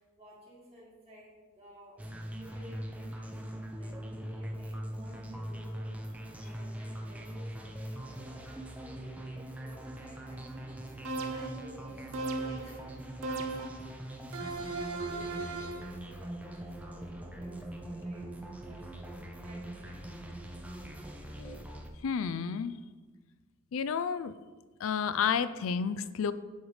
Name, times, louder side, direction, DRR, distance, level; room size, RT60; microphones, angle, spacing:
voice 1, 0.0-3.4 3.8-13.0 14.8-20.2, equal, 30° right, -6 dB, 1.9 m, -55 dB
sound 1, 2.0-21.9, right 1 dB, 5° right, 0.5 m, -42 dB
sound 2, 11.0-11.7 12.1-12.8 13.2-13.9 14.3-15.9, right 3 dB, 80° right, 0.6 m, -37 dB
voice 2, 22.0-22.8 23.7-24.3 24.8-26.3, left 6 dB, 70° left, 14 dB, 0.4 m, -31 dB
7.9 x 5.5 x 3.2 m, 1.3 s
head